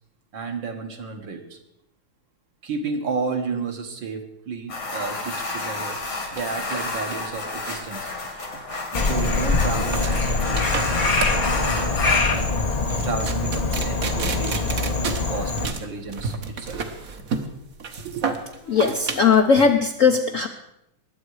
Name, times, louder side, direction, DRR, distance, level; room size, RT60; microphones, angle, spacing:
voice 1, 0.3-1.6 2.6-6.0 6.3-8.1 8.9-12.5 12.7-14.8 15.0-16.8 18.0-18.3, right 4 dB, 65° right, 4 dB, 2.2 m, -32 dB
sound 1, 4.7-12.3, left 2 dB, 90° left, 3.8 m, -30 dB
sound 2, 6.0-19.7, right 5 dB, 45° right, 1.4 m, -32 dB
Frog, 8.9-15.7, left 3 dB, 45° left, 0.5 m, -23 dB
voice 2, 18.7-20.5, left 5 dB, 60° left, 5 dB, 0.8 m, -18 dB
21.5 x 8.2 x 4.8 m, 0.83 s
omnidirectional pair, 2.3 m